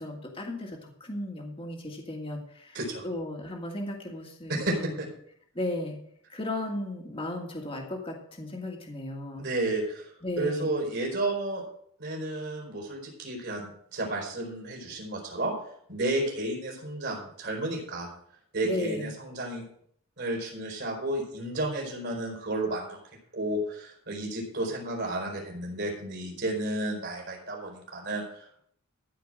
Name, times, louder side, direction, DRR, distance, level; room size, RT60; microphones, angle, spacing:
voice 1, 0.0-2.8 3.0-5.0 5.5-6.0 6.3-9.5 10.2-10.8 18.6-19.2, left 1 dB, 25° left, 1 dB, 1.8 m, -35 dB
voice 2, 4.5-5.1 9.4-11.6 12.0-15.5 15.9-18.1 18.5-19.6 20.2-23.0 23.3-28.6, right 2 dB, 50° right, 0 dB, 4.3 m, -32 dB
14.0 x 5.1 x 7.6 m, 0.67 s
head